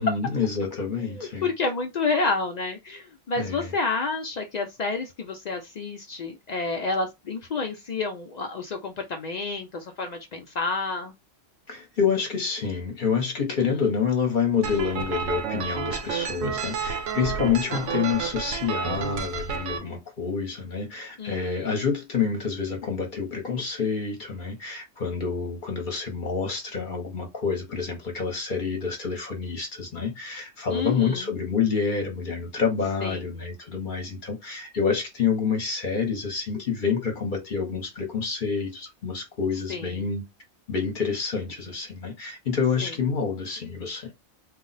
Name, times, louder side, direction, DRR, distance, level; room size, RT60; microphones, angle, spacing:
voice 1, 0.0-1.5 3.3-3.7 11.7-40.2 40.7-44.1, left 6 dB, 45° left, 0.8 m, -28 dB
voice 2, 1.1-11.1 17.7-18.0 21.2-21.8 30.7-31.3 33.0-33.2 39.7-40.1 42.8-42.9, left 3 dB, 85° left, 0.3 m, -30 dB
sound 1, 14.6-19.8, right 6 dB, 85° right, 1.0 m, -30 dB
2.3 x 2.0 x 3.8 m
omnidirectional pair, 1.3 m